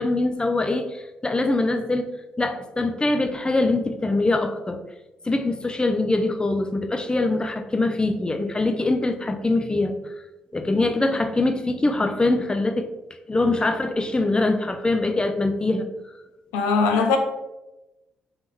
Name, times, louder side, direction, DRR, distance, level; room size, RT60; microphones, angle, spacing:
voice 1, 0.0-2.1 2.4-4.8 5.3-9.9 10.5-12.9 13.3-15.9, left 2 dB, 20° left, 0.6 m, -23 dB
voice 2, 16.5-17.2, left 4 dB, 80° left, 0.4 m, -20 dB
4.7 x 2.9 x 3.7 m
hypercardioid pair, 45°, 4 cm